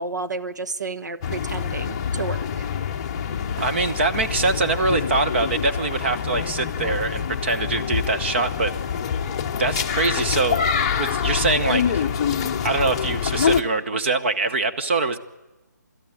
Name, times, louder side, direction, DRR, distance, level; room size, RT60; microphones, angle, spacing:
voice 1, 0.0-2.7, right 3 dB, 70° right, 11 dB, 1.3 m, -31 dB
sound 1, 1.2-13.6, left 7 dB, 20° left, 0.7 m, -26 dB
voice 2, 3.6-8.7 9.6-10.7 11.0-12.1 12.6-15.2, right 3 dB, 40° right, 9 dB, 1.1 m, -23 dB
30.0 x 13.5 x 9.1 m, 1.1 s
hypercardioid pair, 165°, 10 cm